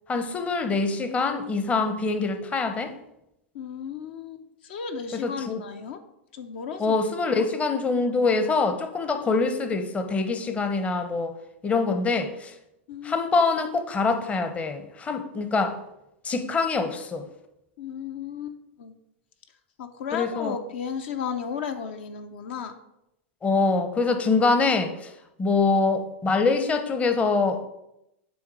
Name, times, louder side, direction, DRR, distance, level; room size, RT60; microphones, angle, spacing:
voice 1, 0.1-2.9 5.1-5.6 6.8-11.3 11.6-12.5 13.0-15.8 16.2-17.2 20.1-20.6 23.4-25.1 25.4-27.7, left 4 dB, 20° left, 8 dB, 0.7 m, -24 dB
voice 2, 3.5-6.0 6.3-7.0 7.3-7.4 12.9-13.3 17.8-18.9 19.8-22.7, left 7 dB, 60° left, 7 dB, 0.7 m, -34 dB
9.6 x 3.6 x 4.7 m, 0.84 s
figure-of-eight pair, 100°, 7 cm